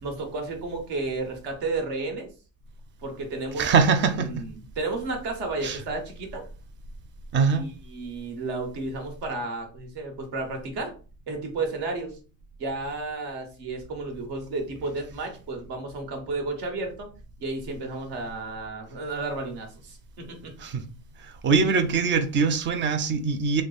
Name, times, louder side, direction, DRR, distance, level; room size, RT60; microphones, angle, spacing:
voice 1, 0.0-2.3 3.0-6.4 7.5-10.9 11.3-12.2 12.6-17.1 17.4-20.5, right 3 dB, 55° right, 1.3 m, -32 dB
voice 2, 3.6-4.3 5.6-5.8 7.3-7.6 20.6-20.8 21.2-23.6, right 5 dB, 25° right, 0.3 m, -22 dB
3.2 x 2.0 x 3.9 m
supercardioid pair, 115°, 48 cm